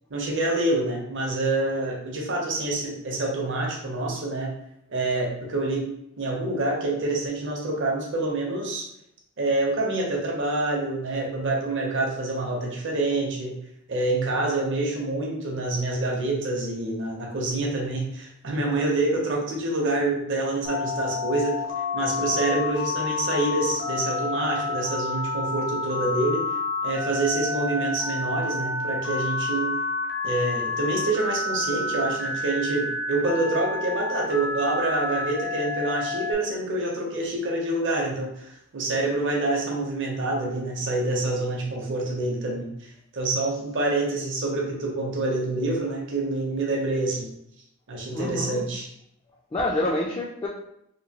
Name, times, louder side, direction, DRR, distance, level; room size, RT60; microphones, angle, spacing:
voice 1, 0.1-4.5 4.9-5.9 6.2-8.9 9.4-13.6 13.9-21.6 21.9-26.4 26.8-29.7 30.2-47.3 47.9-48.9, right 2 dB, 60° right, -1 dB, 0.7 m, -27 dB
Telephone, 20.6-36.3, left 3 dB, 50° left, 0.6 m, -29 dB
voice 2, 48.1-48.6 49.5-50.5, left 1 dB, 20° left, -3 dB, 0.3 m, -27 dB
3.0 x 2.5 x 2.8 m, 0.76 s
head